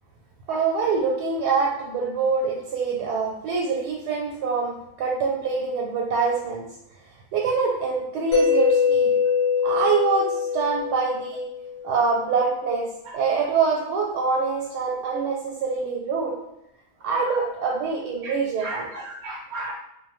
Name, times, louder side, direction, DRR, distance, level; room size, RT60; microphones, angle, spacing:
voice 1, 0.5-6.7 7.3-9.1 9.6-11.4 11.8-12.9 13.1-16.3 17.0-19.0, right 5 dB, 90° right, -2 dB, 1.2 m, -25 dB
Mallet percussion, 8.3-12.1, left 6 dB, 85° left, 1.4 m, -23 dB
voice 2, 18.2-19.7, right 2 dB, 70° right, -3 dB, 0.6 m, -35 dB
2.9 x 2.0 x 3.0 m, 0.85 s
omnidirectional pair, 1.7 m